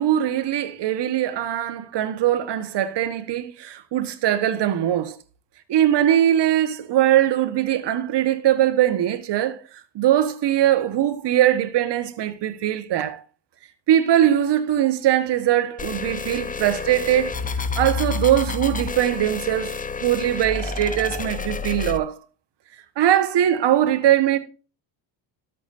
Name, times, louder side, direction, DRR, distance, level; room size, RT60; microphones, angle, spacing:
voice 1, 0.0-5.2 5.7-9.6 9.9-13.2 13.9-17.3 17.7-22.2 23.0-24.4, right 11 dB, 60° right, 1.4 m, -21 dB
sound 1, 15.8-22.0, left 4 dB, 15° left, 0.6 m, -29 dB
12.5 x 8.4 x 2.6 m
cardioid pair, 100°, 48 cm